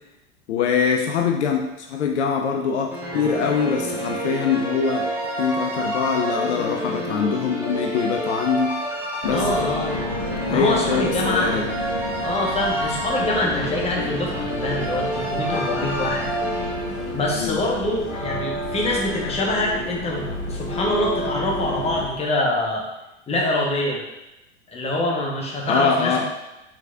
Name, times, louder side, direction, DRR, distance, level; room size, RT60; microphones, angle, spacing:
voice 1, 0.5-5.1 5.4-8.8 9.2-9.7 10.5-11.7 17.4-17.6 25.7-26.3, left 6 dB, 65° left, 2 dB, 0.6 m, -23 dB
sound 1, 2.9-17.2, right 1 dB, 5° right, 1.0 m, -28 dB
sound 2, 9.2-22.1, left 1 dB, 40° left, 1.3 m, -31 dB
voice 2, 9.3-10.0 10.5-11.6 12.2-16.3 17.1-22.8 23.3-24.0 24.7-26.2, left 1 dB, 15° left, -2 dB, 0.9 m, -25 dB
4.7 x 4.0 x 2.3 m, 0.95 s
figure-of-eight pair, 85°, 37 cm